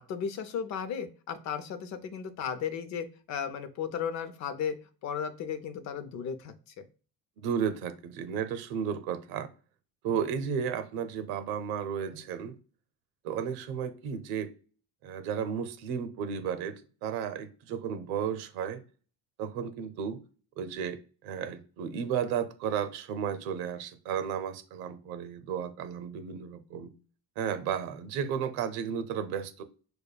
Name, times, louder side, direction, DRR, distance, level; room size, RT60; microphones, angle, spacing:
voice 1, 0.0-4.8 5.0-6.9, left 7 dB, 50° left, 0.6 m, -35 dB
voice 2, 7.4-9.5 10.0-12.5 13.2-14.5 15.0-18.8 19.4-20.2 20.6-26.9 27.4-29.6, right 7 dB, 85° right, 0.7 m, -33 dB
6.7 x 2.2 x 2.2 m
cardioid pair, 140°, 36 cm